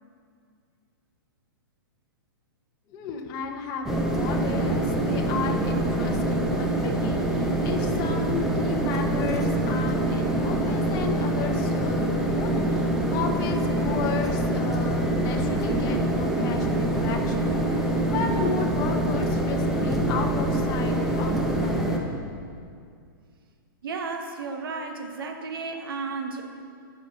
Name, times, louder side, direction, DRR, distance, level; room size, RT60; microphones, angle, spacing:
voice 1, 2.9-17.6 18.1-21.8, left 5 dB, 30° left, 3 dB, 1.1 m, -34 dB
sound 1, 3.8-22.0, right 1 dB, 5° right, 0.9 m, -25 dB
voice 2, 23.8-26.6, right 4 dB, 75° right, 5 dB, 1.3 m, -33 dB
14.5 x 6.5 x 4.2 m, 2.2 s
hypercardioid pair, 145°, 12 cm